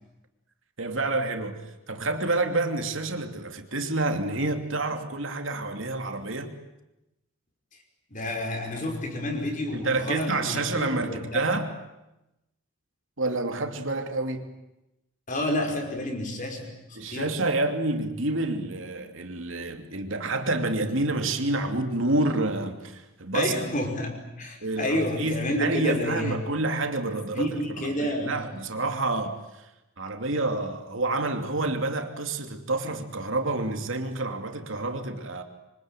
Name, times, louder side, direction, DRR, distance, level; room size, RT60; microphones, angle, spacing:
voice 1, 0.8-6.6 9.7-11.8 13.2-14.5 17.0-23.5 24.6-29.7 30.0-35.4, right 2 dB, 70° right, 2.8 m, -28 dB
voice 2, 8.1-11.5 15.3-17.3 23.3-26.6 27.3-28.5, left 1 dB, 40° left, 5.4 m, -30 dB
26.0 x 25.0 x 9.1 m
head